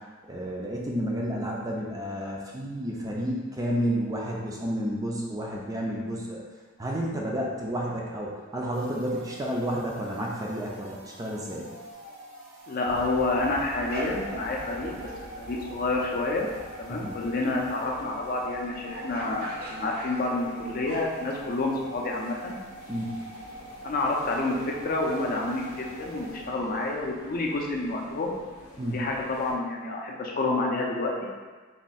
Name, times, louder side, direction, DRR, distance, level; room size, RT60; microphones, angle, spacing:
voice 1, 0.3-6.4 6.8-11.7 16.9-17.1 22.9-23.1 28.8-29.0, equal, 15° right, -2 dB, 0.4 m, -31 dB
sound 1, 8.7-26.9, right 1 dB, 70° right, 0.9 m, -45 dB
sound 2, 11.9-12.2 12.6-15.2 15.5-15.6 18.9-21.3, right 1 dB, 45° right, 0.7 m, -41 dB
voice 2, 12.7-15.1 15.4-16.5 16.8-22.6 23.8-28.3 28.9-31.3, left 2 dB, 40° left, -1 dB, 0.5 m, -29 dB
sound 3, 12.8-29.5, left 1 dB, 90° left, 0.6 m, -48 dB
3.6 x 2.3 x 4.1 m, 1.4 s
head